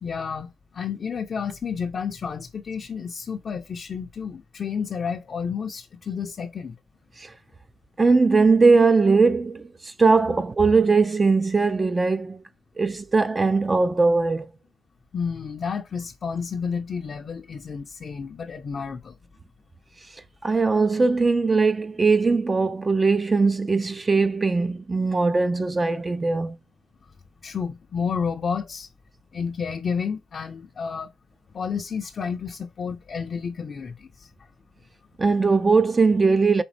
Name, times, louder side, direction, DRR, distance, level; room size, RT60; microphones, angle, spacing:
voice 1, 0.0-6.8 15.1-19.1 27.4-28.9 29.3-31.1 31.5-34.3, left 6 dB, 45° left, 0.5 m, -31 dB
voice 2, 8.0-12.4 12.8-14.5 20.4-26.6 35.2-36.6, right 4 dB, 25° right, 0.4 m, -20 dB
5.1 x 2.9 x 3.3 m
cardioid pair, 90°, 0 cm